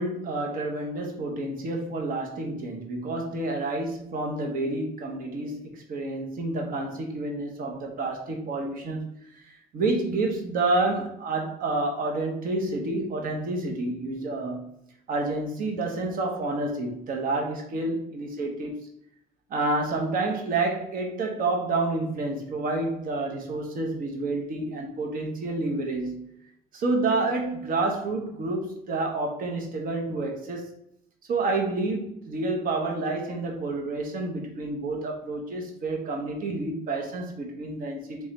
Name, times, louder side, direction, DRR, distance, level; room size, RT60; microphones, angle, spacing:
voice 1, 0.0-9.0 9.7-14.8 15.1-18.8 19.5-26.3 26.7-30.7 31.3-38.3, right 2 dB, 55° right, 1.0 m, -29 dB
3.5 x 3.2 x 4.0 m
cardioid pair, 110°, 17 cm